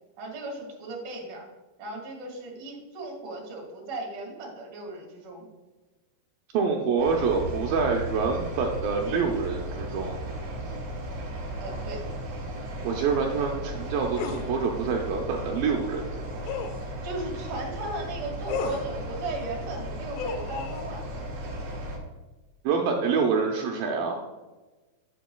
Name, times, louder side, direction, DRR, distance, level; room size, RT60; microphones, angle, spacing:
voice 1, 0.2-1.5 1.8-5.5 11.6-12.0 17.0-21.0, right 2 dB, 40° right, -2 dB, 1.7 m, -36 dB
voice 2, 6.5-10.2 12.8-16.4 22.6-24.2, right 5 dB, 80° right, 1 dB, 2.1 m, -26 dB
sound 1, 7.0-22.0, right 1 dB, 60° right, 1.8 m, -35 dB
sound 2, 14.2-14.5 16.5-16.8 18.5-18.9 20.2-20.9, left 6 dB, 85° left, 2.7 m, -33 dB
10.0 x 7.7 x 2.3 m, 1.2 s
omnidirectional pair, 4.9 m